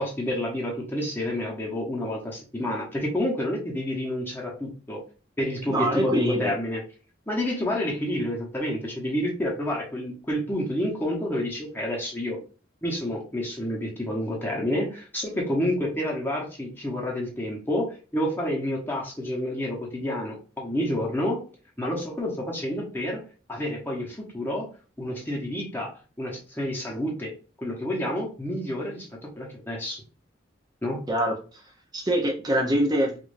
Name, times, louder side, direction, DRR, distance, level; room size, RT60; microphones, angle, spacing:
voice 1, 0.0-5.0 5.4-6.8 7.3-12.4 12.8-21.4 21.8-23.2 23.5-24.7 25.0-25.9 26.2-27.3 27.6-30.0 30.8-31.1, left 1 dB, 10° left, -3 dB, 1.0 m, -29 dB
voice 2, 5.7-6.5 31.1-31.6 31.9-33.2, right 1 dB, 20° right, 1 dB, 0.7 m, -24 dB
4.9 x 2.6 x 2.6 m, 0.35 s
head